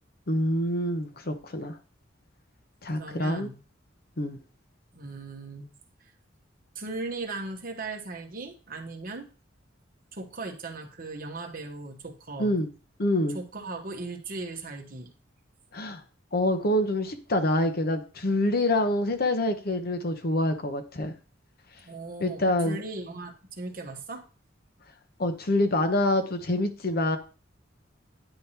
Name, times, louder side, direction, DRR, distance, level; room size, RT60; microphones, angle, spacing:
voice 1, 0.3-1.8 2.8-3.5 4.2-4.4 12.4-12.7 13.0-13.4 15.7-16.0 16.3-21.1 22.2-22.8 25.2-27.2, left 1 dB, 50° left, 7 dB, 0.9 m, -26 dB
voice 2, 2.9-3.6 4.9-5.7 6.0-6.1 6.7-9.3 10.1-12.6 13.3-15.1 21.8-24.2, right 3 dB, 45° right, 3 dB, 1.1 m, -38 dB
9.8 x 3.4 x 2.9 m, 0.35 s
head